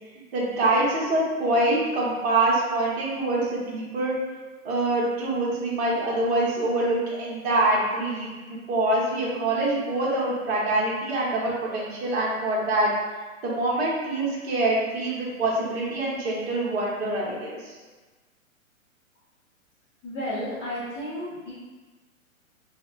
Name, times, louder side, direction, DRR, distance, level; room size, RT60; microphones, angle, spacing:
voice 1, 0.3-4.1 4.6-12.9 13.4-17.8, right 2 dB, 50° right, -5 dB, 0.8 m, -25 dB
voice 2, 20.0-21.5, equal, 15° left, -16 dB, 0.6 m, -32 dB
3.2 x 2.1 x 2.3 m, 1.3 s
hypercardioid pair, 130°, 41 cm